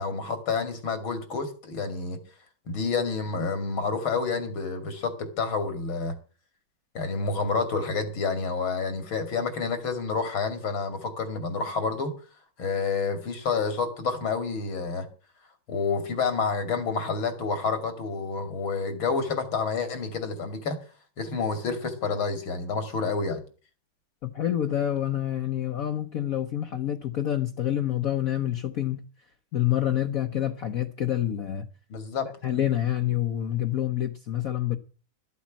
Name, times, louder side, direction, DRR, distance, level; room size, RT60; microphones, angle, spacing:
voice 1, 0.0-2.2 2.7-6.1 6.9-12.1 12.6-15.1 15.7-20.8 21.2-23.4 31.9-32.3, left 4 dB, 80° left, 3.2 m, -29 dB
voice 2, 24.2-29.0 29.5-31.7 32.4-34.8, left 11 dB, 55° left, 1.1 m, -27 dB
13.0 x 8.3 x 7.3 m
omnidirectional pair, 2.2 m